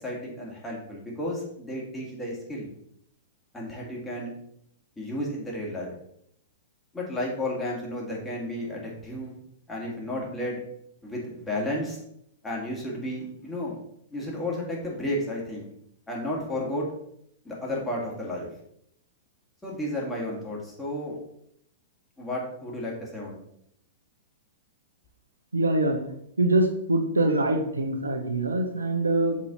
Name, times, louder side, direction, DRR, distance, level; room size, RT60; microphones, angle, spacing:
voice 1, 0.0-2.7 3.5-4.3 5.0-5.9 6.9-9.4 9.7-10.6 11.0-12.0 12.4-13.7 14.1-15.7 16.1-16.9 17.4-18.5 19.6-21.2 22.2-23.4, left 1 dB, 15° left, -3 dB, 2.1 m, -32 dB
voice 2, 25.5-26.0 26.4-29.4, right 2 dB, 80° right, 4 dB, 0.8 m, -24 dB
6.2 x 4.2 x 4.0 m, 0.73 s
figure-of-eight pair, 105°, 0 cm